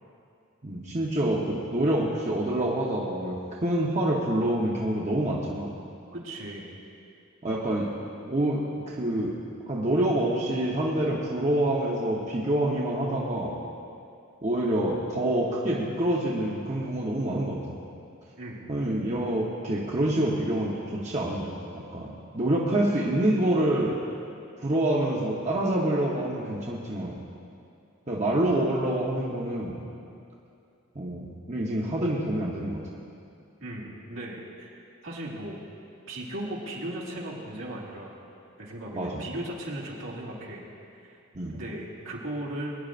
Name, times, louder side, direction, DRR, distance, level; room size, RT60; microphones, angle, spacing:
voice 1, 0.6-5.7 7.4-7.9 8.3-9.4 9.7-13.5 14.4-17.8 18.7-24.0 24.6-27.2 28.1-29.8 30.9-32.8 38.9-39.2 41.3-41.5, right 1 dB, 30° right, -4 dB, 1.0 m, -27 dB
voice 2, 6.1-6.7 18.4-18.7 33.6-34.7 35.0-35.6 36.1-38.1 38.6-40.6 41.1-41.2 41.5-42.8, right 1 dB, 70° right, -5 dB, 2.3 m, -37 dB
22.5 x 10.5 x 2.6 m, 2.5 s
head